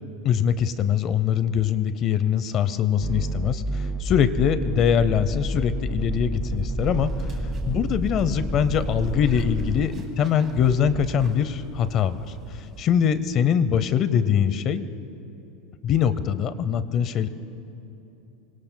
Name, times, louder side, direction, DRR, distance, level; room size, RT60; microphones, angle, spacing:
voice 1, 0.2-7.1 7.7-12.2 12.8-14.9 15.8-17.3, left 8 dB, 35° left, 14 dB, 0.6 m, -23 dB
sound 1, 3.0-9.9, right 1 dB, 10° right, 0.6 m, -29 dB
sound 2, 6.3-6.4 6.8-13.2, right 5 dB, 25° right, 2.2 m, -42 dB
26.0 x 23.5 x 2.2 m, 3.0 s
supercardioid pair, 155°, 0 cm